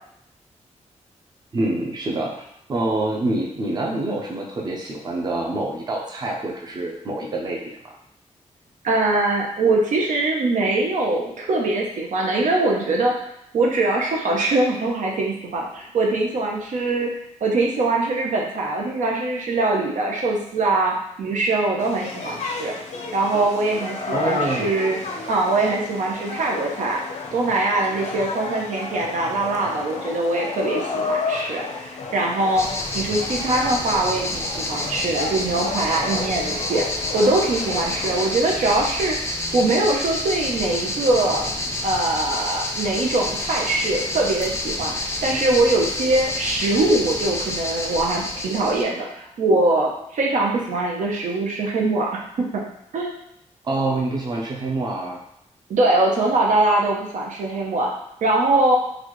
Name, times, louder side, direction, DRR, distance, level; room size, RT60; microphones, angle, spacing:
voice 1, 1.5-2.4 2.7-7.9 24.1-24.7 53.6-55.2, right 2 dB, 35° right, -1 dB, 0.5 m, -26 dB
voice 2, 8.8-13.1 13.5-17.1 17.4-22.7 23.1-25.0 25.3-27.0 27.3-32.7 32.9-36.9 37.1-39.1 39.5-41.4 41.8-52.2 52.5-52.6 52.9-53.1 55.7-57.9 58.2-58.8, right 2 dB, 90° right, -1 dB, 0.7 m, -22 dB
sound 1, 21.8-38.3, left 4 dB, 70° left, 0.6 m, -32 dB
sound 2, 32.5-48.8, left 2 dB, 20° left, 0.4 m, -28 dB
4.0 x 2.4 x 3.0 m, 0.77 s
wide cardioid pair, 165°, 12 cm